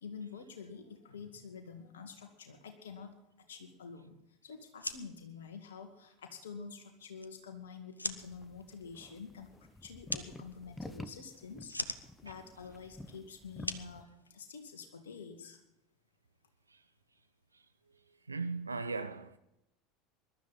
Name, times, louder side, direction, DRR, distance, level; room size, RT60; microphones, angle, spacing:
voice 1, 0.0-9.5 9.8-11.7 12.2-15.6, left 5 dB, 70° left, 2.0 m, -48 dB
sound 1, 4.6-14.9, left 2 dB, 85° left, 0.7 m, -45 dB
sound 2, 8.2-14.0, left 2 dB, 10° left, 1.0 m, -50 dB
voice 2, 18.3-19.4, right 4 dB, 80° right, 0.8 m, -37 dB
21.0 x 12.0 x 4.2 m
figure-of-eight pair, 75°, 0 cm